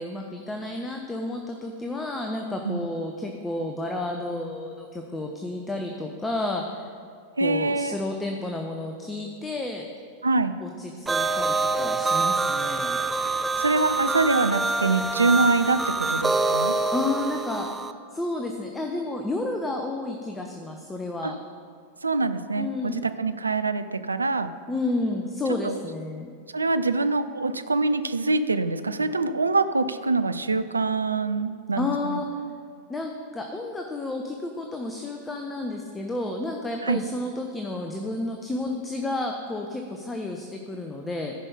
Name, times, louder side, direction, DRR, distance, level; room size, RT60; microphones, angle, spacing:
voice 1, 0.0-6.9 7.4-9.8 10.6-13.0 16.9-17.7 18.1-21.3 22.6-23.1 24.7-26.3 31.8-32.3 32.9-41.3, left 2 dB, 10° left, 3 dB, 0.8 m, -31 dB
voice 2, 7.4-8.0 10.2-10.5 13.6-15.8 16.1-16.7 21.2-21.3 22.0-24.5 25.6-25.8 26.5-32.2 36.8-37.0, right 3 dB, 80° right, 11 dB, 0.4 m, -24 dB
sound 1, 11.1-17.9, right 3 dB, 10° right, 0.4 m, -26 dB
14.5 x 5.4 x 5.4 m, 2.2 s
figure-of-eight pair, 90°, 0 cm